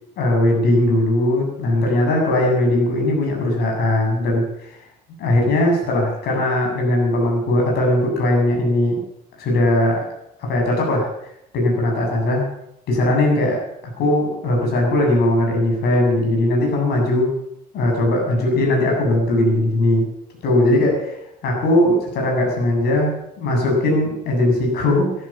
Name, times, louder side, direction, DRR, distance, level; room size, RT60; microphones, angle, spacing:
voice 1, 0.2-4.7 5.2-9.0 9.4-10.0 10.4-11.1 11.5-12.5 12.9-13.6 14.0-17.3 17.7-20.1 20.4-21.2 21.4-25.1, left 1 dB, 70° left, 0 dB, 7.8 m, -19 dB
14.0 x 13.5 x 7.2 m, 0.79 s
cardioid pair, 110°, 17 cm